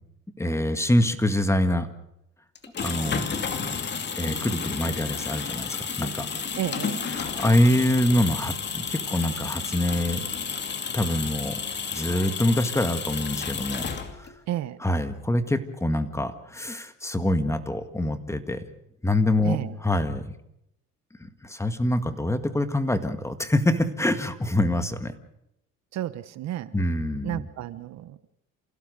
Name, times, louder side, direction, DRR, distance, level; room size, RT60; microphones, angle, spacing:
voice 1, 0.4-1.9 2.8-3.2 4.2-6.3 7.2-10.3 10.9-11.6 11.9-13.8 14.2-14.3 14.8-18.6 19.0-19.6 19.8-20.2 21.4-25.1 26.7-27.4, left 1 dB, 10° left, 9 dB, 1.9 m, -25 dB
sound 1, 2.5-14.4, left 6 dB, 35° left, 2.6 m, -31 dB
voice 2, 6.5-7.0 14.5-14.8 19.4-19.8 25.9-26.8 27.2-28.2, right 13 dB, 65° right, 14 dB, 1.2 m, -31 dB
28.0 x 16.5 x 6.7 m, 0.80 s
cardioid pair, 100°, 30 cm